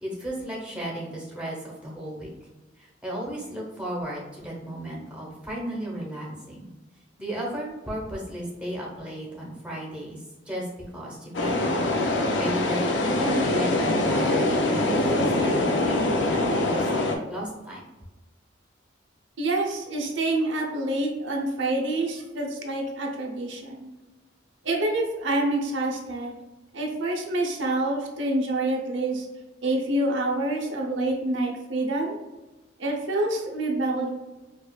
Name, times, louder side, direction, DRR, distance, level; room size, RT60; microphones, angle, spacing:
voice 1, 0.0-2.3 3.0-6.7 7.2-10.2 10.5-10.7 10.9-11.6 12.4-14.6 14.9-16.9 17.3-17.8, right 1 dB, 5° right, -5 dB, 1.0 m, -34 dB
sound 1, 11.3-17.2, left 2 dB, 70° left, 0.5 m, -24 dB
voice 2, 19.4-23.8 24.6-26.3 26.7-29.2 29.6-32.2 32.8-34.1, right 2 dB, 85° right, 0 dB, 0.7 m, -27 dB
4.8 x 2.5 x 2.3 m, 1.1 s
head